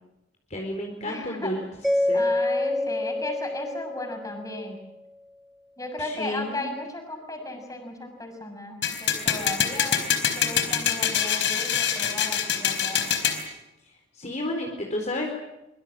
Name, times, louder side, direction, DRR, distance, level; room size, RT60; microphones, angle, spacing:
voice 1, 0.5-1.6 2.1-2.2 6.0-6.7 14.1-15.3, left 1 dB, 40° left, 1 dB, 4.2 m, -31 dB
voice 2, 1.0-1.5 2.1-4.8 5.8-13.1, left 2 dB, 20° left, 4 dB, 6.6 m, -35 dB
Mallet percussion, 1.8-4.8, left 1 dB, ahead, 1.1 m, -27 dB
sound 1, 8.8-13.4, left 8 dB, 70° left, 4.2 m, -25 dB
25.0 x 24.0 x 7.7 m, 0.92 s
head